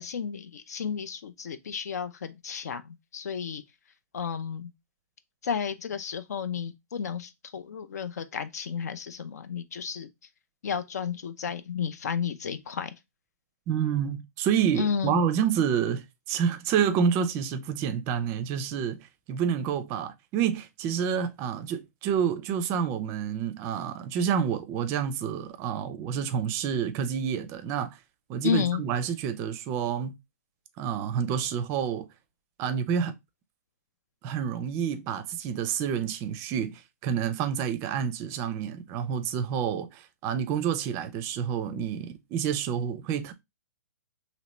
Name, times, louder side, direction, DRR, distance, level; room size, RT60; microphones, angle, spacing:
voice 1, 0.0-2.8 3.1-3.6 4.1-4.7 5.4-10.1 10.6-12.9 14.8-15.2 28.4-28.8, left 7 dB, 70° left, 0.4 m, -32 dB
voice 2, 13.7-28.0 28.3-30.2 30.8-32.1 32.6-33.1 34.2-43.3, right 8 dB, 30° right, 0.4 m, -28 dB
2.9 x 2.9 x 3.0 m
hypercardioid pair, 130°, 9 cm